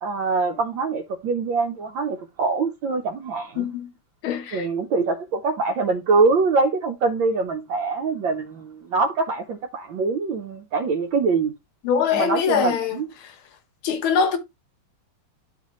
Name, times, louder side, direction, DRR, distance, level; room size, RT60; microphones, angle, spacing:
voice 1, 0.0-3.6 4.5-11.5 12.1-13.0, right 4 dB, 70° right, 1.6 m, -24 dB
voice 2, 3.6-3.9 4.2-4.7 11.8-13.4 13.8-14.4, left 7 dB, 85° left, 2.0 m, -23 dB
11.5 x 4.2 x 3.1 m
omnidirectional pair, 2.3 m